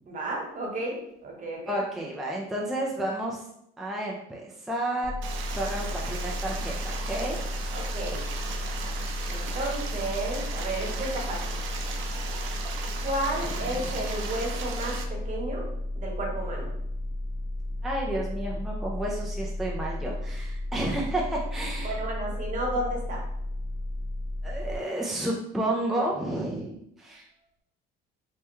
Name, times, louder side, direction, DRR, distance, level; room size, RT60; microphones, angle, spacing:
voice 1, 0.1-1.8 5.9-6.0 7.7-8.2 9.3-11.5 13.0-15.7 15.9-16.7 21.8-23.2, right 1 dB, 40° right, -1 dB, 1.0 m, -33 dB
voice 2, 1.7-3.5 3.8-5.1 5.6-7.4 7.6-7.8 13.5-14.0 17.8-22.0 24.4-27.3, right 1 dB, ahead, -3 dB, 0.4 m, -31 dB
sound 1, 5.0-24.8, left 1 dB, 65° left, 0.8 m, -33 dB
Stream, 5.2-15.0, right 5 dB, 70° right, 0.5 m, -37 dB
3.4 x 2.2 x 3.0 m, 0.77 s
cardioid pair, 105°, 20 cm